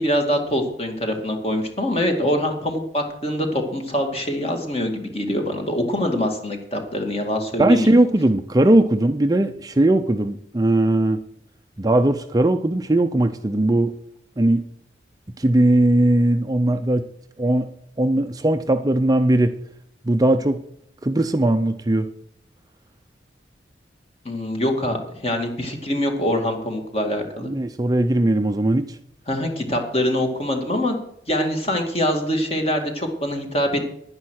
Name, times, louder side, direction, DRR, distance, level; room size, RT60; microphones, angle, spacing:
voice 1, 0.0-7.9 24.2-27.5 29.3-31.0 31.3-33.9, equal, 30° left, 3 dB, 2.2 m, -24 dB
voice 2, 7.6-11.2 11.8-13.9 14.4-14.7 15.4-17.1 17.4-17.7 18.0-19.5 20.0-20.6 21.0-22.1 27.4-29.0, right 1 dB, 20° right, 8 dB, 0.5 m, -19 dB
10.5 x 10.0 x 6.3 m, 0.71 s
head